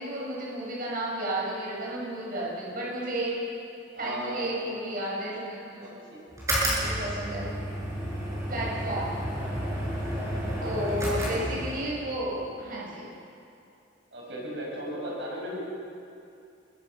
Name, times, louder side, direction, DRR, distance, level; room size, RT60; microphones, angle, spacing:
voice 1, 0.0-3.3 4.0-5.8 6.7-7.6 8.5-9.2 10.6-13.1, right 1 dB, 45° right, -5 dB, 6.5 m, -32 dB
voice 2, 3.9-4.5 5.8-6.2 10.2-10.8 14.1-15.6, equal, 65° right, -3 dB, 6.4 m, -37 dB
sound 1, 6.3-12.0, equal, 15° right, 7.6 m, -31 dB
27.5 x 23.0 x 6.1 m, 2.6 s
head